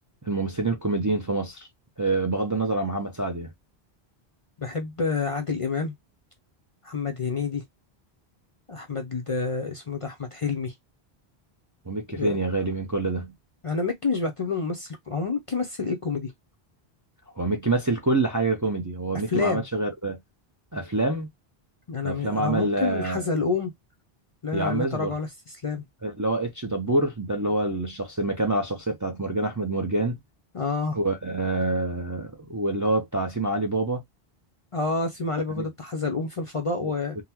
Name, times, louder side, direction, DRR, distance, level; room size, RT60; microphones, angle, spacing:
voice 1, 0.2-1.7 2.0-3.5 11.9-13.3 17.4-20.2 20.7-21.3 22.0-23.3 24.5-25.1 26.0-30.2 30.9-34.0 35.6-35.7 36.8-36.9, right 2 dB, 25° right, 0.4 m, -26 dB
voice 2, 4.6-5.9 6.8-7.6 8.7-10.7 12.1-12.3 13.6-16.3 19.3-19.6 21.9-23.7 24.4-25.3 25.6-25.8 30.5-31.0 34.7-37.2, left 4 dB, 40° left, 0.5 m, -28 dB
3.8 x 2.0 x 2.8 m
omnidirectional pair, 1.0 m